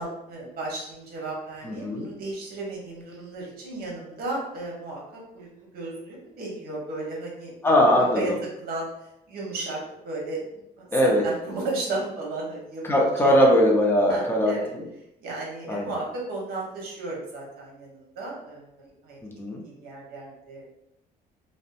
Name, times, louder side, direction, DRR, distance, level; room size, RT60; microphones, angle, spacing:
voice 1, 0.0-5.5 5.7-7.5 8.0-8.3 8.6-10.4 10.8-12.8 13.2-13.5 14.1-14.7 15.2-19.2 19.6-20.7, right 2 dB, 65° right, -2 dB, 1.0 m, -34 dB
voice 2, 1.6-2.1 7.6-8.2 10.9-11.2 12.8-14.8 15.7-15.9 19.2-19.6, equal, 15° left, -1 dB, 0.6 m, -20 dB
2.6 x 2.1 x 2.5 m, 0.84 s
cardioid pair, 110°, 17 cm